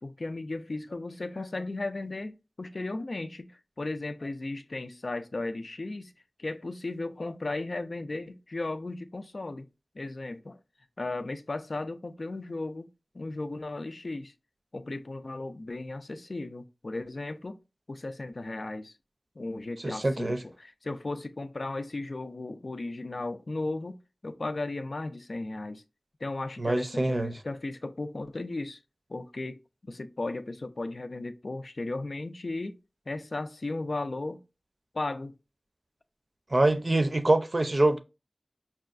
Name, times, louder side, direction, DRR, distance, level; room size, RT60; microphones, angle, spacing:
voice 1, 0.0-6.1 6.4-9.7 9.9-10.6 11.0-12.9 13.1-14.3 14.7-17.6 17.9-18.9 19.4-25.8 26.2-28.8 29.1-32.8 33.1-34.4 34.9-35.3, left 2 dB, 75° left, 0.3 m, -35 dB
voice 2, 19.8-20.4 26.6-27.3 36.5-38.0, right 2 dB, 50° right, 0.5 m, -24 dB
5.4 x 2.2 x 2.4 m
wide cardioid pair, 40°, 0 cm